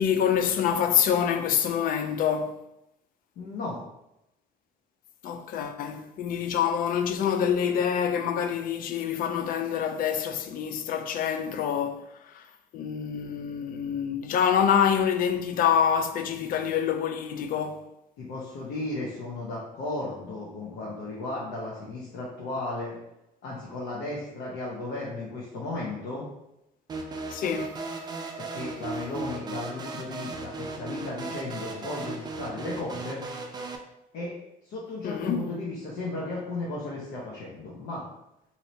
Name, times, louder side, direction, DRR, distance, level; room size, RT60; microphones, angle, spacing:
voice 1, 0.0-2.6 5.2-12.0 12.3-12.4 12.7-17.8 27.3-27.7 35.0-35.4, left 8 dB, 55° left, 0.4 m, -26 dB
voice 2, 3.4-3.8 18.2-23.0 23.4-26.2 28.4-33.2 34.1-34.3 34.7-38.0, left 2 dB, 80° left, 0.8 m, -35 dB
sound 1, 26.9-33.8, right 3 dB, 25° right, 0.4 m, -36 dB
3.1 x 2.8 x 2.7 m
cardioid pair, 110°, 17 cm